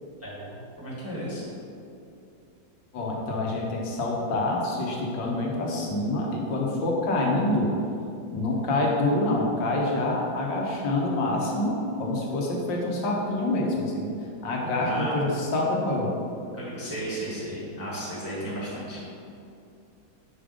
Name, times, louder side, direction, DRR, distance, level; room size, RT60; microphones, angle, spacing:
voice 1, 0.2-1.4 14.8-15.2 16.5-19.0, right 1 dB, 10° right, -7 dB, 0.9 m, -34 dB
voice 2, 2.9-7.7 8.3-11.7 12.0-14.1 14.4-16.1, left 2 dB, 75° left, -2 dB, 1.6 m, -26 dB
5.5 x 3.6 x 4.9 m, 2.6 s
omnidirectional pair, 2.0 m